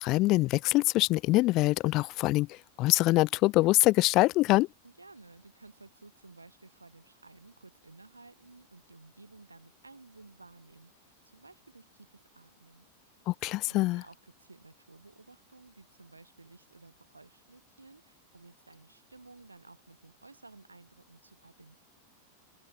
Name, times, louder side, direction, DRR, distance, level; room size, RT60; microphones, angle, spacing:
voice 1, 0.0-4.7 13.3-14.0, left 19 dB, 40° left, 0.4 m, -24 dB
voice 2, 4.8-13.2 13.6-21.8, right 3 dB, 80° right, 4.9 m, -55 dB
open air
figure-of-eight pair, 90°, 0 cm